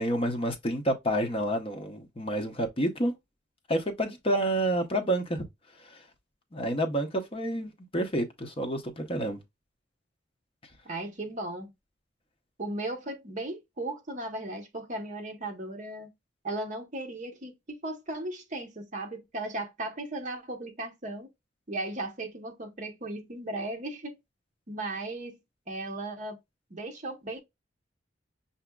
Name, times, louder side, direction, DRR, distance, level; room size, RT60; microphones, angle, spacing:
voice 1, 0.0-3.1 3.7-5.4 5.8-6.0 6.5-9.4, right 1 dB, 30° left, 0.7 m, -29 dB
voice 2, 10.8-11.7 12.6-16.1 16.4-21.3 21.7-24.1 24.7-25.4 25.7-26.4 26.7-27.4, right 2 dB, 40° right, 0.9 m, -36 dB
5.9 x 2.7 x 2.2 m
head